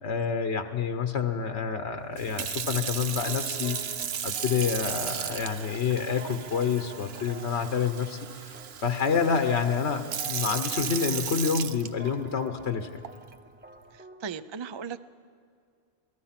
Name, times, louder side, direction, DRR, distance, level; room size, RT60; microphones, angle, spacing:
voice 1, 0.0-3.8 4.2-8.5 8.8-13.0, left 6 dB, 85° left, 7 dB, 1.2 m, -28 dB
Sink (filling or washing) / Fill (with liquid), 2.2-12.4 13.0-13.3, right 8 dB, 70° right, 1.0 m, -35 dB
sound 1, 2.7-14.3, equal, 10° right, 1.0 m, -46 dB
voice 2, 13.9-15.0, right 6 dB, 40° right, 14 dB, 0.4 m, -37 dB
27.5 x 18.0 x 5.9 m, 2.3 s
omnidirectional pair, 1.1 m